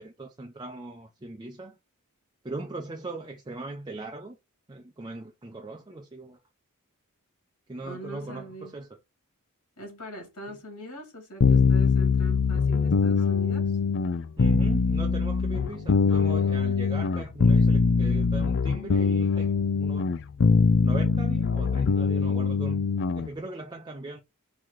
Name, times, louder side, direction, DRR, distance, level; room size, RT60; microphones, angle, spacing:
voice 1, 0.0-1.8 2.4-4.4 4.7-6.4 7.7-8.9 14.4-20.1 20.8-22.8 23.1-24.2, right 2 dB, 20° right, 0.6 m, -39 dB
voice 2, 7.8-8.7 9.8-13.8, right 2 dB, 80° left, 2.6 m, -42 dB
sound 1, 11.4-23.3, left 5 dB, 55° left, 0.4 m, -23 dB
4.7 x 3.0 x 3.7 m
head